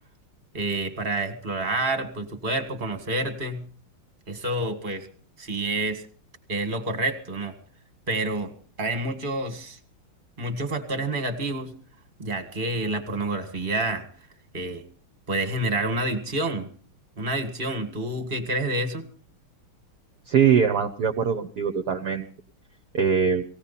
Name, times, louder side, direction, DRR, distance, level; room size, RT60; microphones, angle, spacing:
voice 1, 0.5-3.6 4.3-5.1 5.4-6.1 6.5-7.5 8.1-9.8 10.4-11.7 12.2-14.0 14.5-14.8 15.3-16.7 17.2-19.1, right 2 dB, 25° right, 8 dB, 1.8 m, -28 dB
voice 2, 20.3-22.2 22.9-23.4, right 7 dB, 55° right, 4 dB, 1.4 m, -22 dB
19.0 x 16.0 x 4.2 m, 0.43 s
omnidirectional pair, 2.3 m